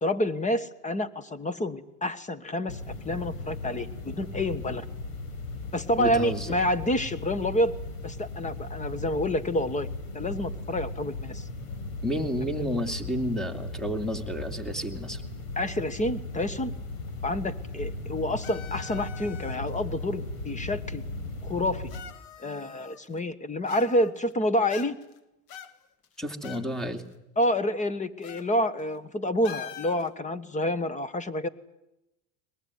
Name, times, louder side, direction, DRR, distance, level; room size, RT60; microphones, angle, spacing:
voice 1, 0.0-2.8 3.0-4.8 5.7-7.8 8.0-9.9 10.1-11.5 12.5-12.6 15.6-16.7 17.2-21.0 21.4-21.9 22.4-24.9 27.4-31.5, left 1 dB, 20° left, 16 dB, 1.5 m, -28 dB
sound 1, 2.7-22.0, left 2 dB, 90° left, 4.8 m, -37 dB
voice 2, 6.0-6.6 12.0-15.2 26.2-27.0, equal, ahead, 8 dB, 2.5 m, -31 dB
sound 2, 18.4-19.8 20.7-20.8 21.9-23.2 23.7-24.3 24.7-25.2 25.5-26.7 27.0-27.1 28.2-28.5 28.8-29.0 29.4-30.1, left 10 dB, 60° left, 1.7 m, -44 dB
22.0 x 21.0 x 9.6 m, 0.91 s
supercardioid pair, 110°, 41 cm